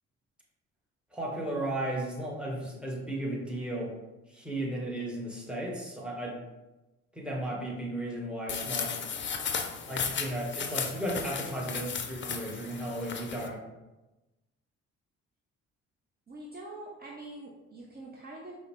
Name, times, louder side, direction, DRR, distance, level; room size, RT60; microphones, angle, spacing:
voice 1, 1.1-3.9 4.3-6.4 7.1-8.9 9.9-13.6, right 1 dB, 5° right, -2 dB, 1.1 m, -35 dB
sound 1, 8.5-13.5, left 6 dB, 35° left, 0.5 m, -35 dB
voice 2, 16.3-18.6, right 2 dB, 30° right, -3 dB, 0.7 m, -44 dB
4.8 x 2.1 x 3.1 m, 1.1 s
hypercardioid pair, 55°, 32 cm